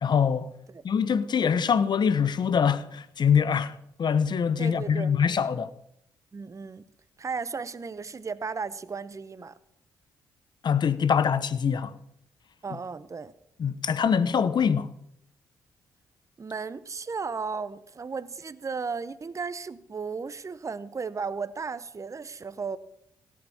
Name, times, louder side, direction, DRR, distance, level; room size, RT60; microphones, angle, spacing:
voice 1, 0.0-0.5 0.8-5.7 10.6-11.9 13.6-14.9, left 7 dB, 50° left, 1.0 m, -24 dB
voice 2, 4.6-5.1 6.3-6.8 7.2-9.6 12.6-13.3 16.4-22.8, right 5 dB, 35° right, 0.8 m, -35 dB
17.0 x 8.7 x 7.1 m
hypercardioid pair, 45°, 10 cm